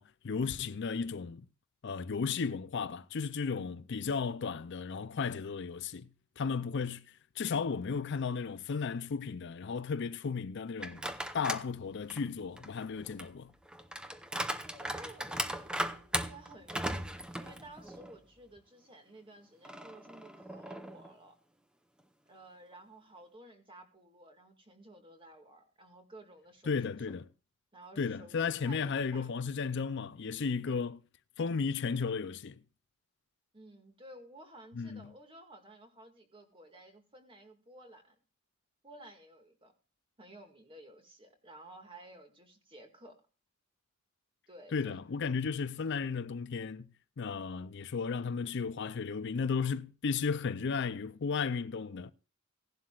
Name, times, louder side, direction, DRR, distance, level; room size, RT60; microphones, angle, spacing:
voice 1, 0.0-1.5 1.8-6.1 6.4-7.0 7.4-11.0 11.3-13.5 26.7-27.2 28.0-31.0 31.4-32.6 34.7-35.1 44.7-46.9 47.2-52.1, left 5 dB, 55° left, 0.5 m, -34 dB
sound 1, 10.8-11.7 12.1-18.2 18.6-18.7 19.6-21.1, right 1 dB, 5° right, 0.7 m, -38 dB
voice 2, 14.6-21.4 22.3-26.8 27.1-27.2 27.7-29.3 33.5-38.2 38.8-39.7 40.2-43.2 44.5-45.0, right 1 dB, 25° right, 2.0 m, -54 dB
17.0 x 11.5 x 2.4 m
head